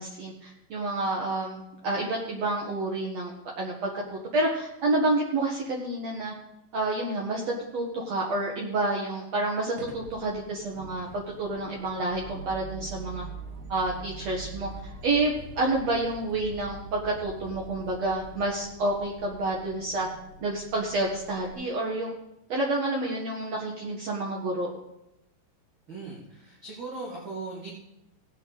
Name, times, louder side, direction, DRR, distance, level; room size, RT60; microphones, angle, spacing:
voice 1, 0.0-6.3 6.7-13.2 13.7-14.7 15.0-20.1 20.4-22.1 22.5-24.7, right 2 dB, 85° right, -2 dB, 1.4 m, -29 dB
sound 1, 9.8-21.5, right 3 dB, 60° right, 2.2 m, -44 dB
voice 2, 25.9-27.7, right 3 dB, 40° right, -5 dB, 1.8 m, -38 dB
17.5 x 8.4 x 4.0 m, 0.86 s
omnidirectional pair, 5.3 m